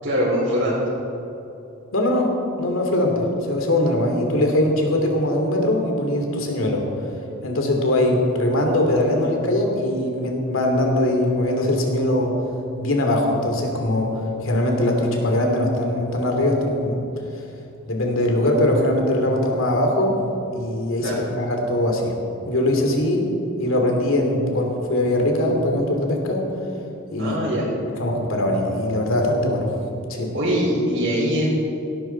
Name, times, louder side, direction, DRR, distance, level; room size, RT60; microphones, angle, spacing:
voice 1, 0.0-0.7 21.0-21.2 27.2-27.6 30.3-31.5, equal, 65° right, -10 dB, 4.0 m, -22 dB
voice 2, 1.9-6.9 7.4-12.4 12.8-17.0 17.9-20.2 20.5-22.2 22.5-23.3 23.6-26.4 27.1-27.4 27.9-29.7 30.1-30.3, left 1 dB, 75° left, 2 dB, 2.6 m, -21 dB
17.5 x 13.0 x 4.5 m, 2.9 s
head